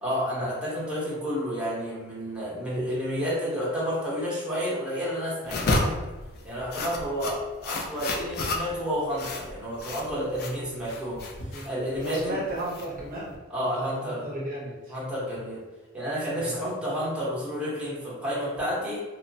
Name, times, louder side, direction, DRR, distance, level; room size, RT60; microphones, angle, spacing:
voice 1, 0.0-5.9 6.4-11.2 11.6-12.4 13.5-14.3 14.9-15.6 15.9-19.0, equal, 5° right, -7 dB, 0.8 m, -30 dB
sound 1, 5.4-13.4, left 2 dB, 50° left, 0.4 m, -32 dB
voice 2, 12.0-13.4 13.7-14.9 16.4-16.6, right 1 dB, 40° right, -6 dB, 0.6 m, -34 dB
2.9 x 2.0 x 2.6 m, 1.2 s
head